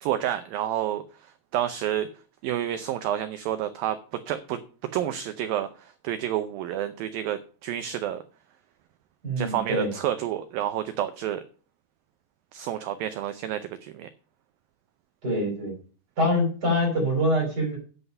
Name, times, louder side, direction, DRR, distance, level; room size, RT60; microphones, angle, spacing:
voice 1, 0.0-2.1 2.4-4.0 4.3-4.6 4.9-8.2 9.4-11.4 12.5-14.1, right 11 dB, 90° right, 10 dB, 2.0 m, -29 dB
voice 2, 9.2-9.9 15.2-15.7 16.2-17.8, equal, 25° right, 0 dB, 5.0 m, -24 dB
9.6 x 8.0 x 5.4 m, 0.39 s
omnidirectional pair, 5.0 m